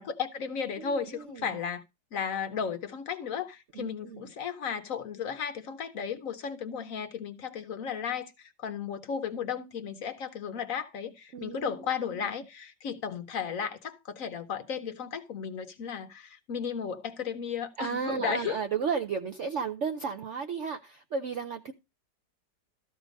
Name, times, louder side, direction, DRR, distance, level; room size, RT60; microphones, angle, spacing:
voice 1, 0.0-1.8 2.1-18.6, left 7 dB, 60° left, 0.9 m, -34 dB
voice 2, 0.8-1.6 3.7-4.3 11.3-11.9 12.1-12.3 17.8-21.7, right 5 dB, 60° right, 0.8 m, -34 dB
13.5 x 4.8 x 5.1 m
omnidirectional pair, 1.9 m